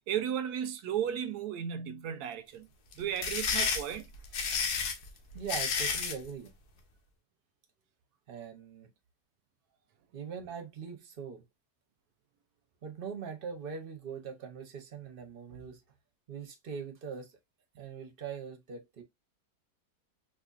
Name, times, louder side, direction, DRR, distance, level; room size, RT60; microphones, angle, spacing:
voice 1, 0.1-2.7 3.0-4.1, right 9 dB, 80° right, 1.1 m, -34 dB
sound 1, 2.9-6.2, left 5 dB, 80° left, 1.4 m, -31 dB
voice 2, 5.3-6.5 8.3-8.9 10.1-11.4 12.8-15.8 16.3-17.4 17.8-19.0, right 6 dB, 45° right, 0.8 m, -41 dB
4.1 x 2.6 x 2.4 m
omnidirectional pair, 1.7 m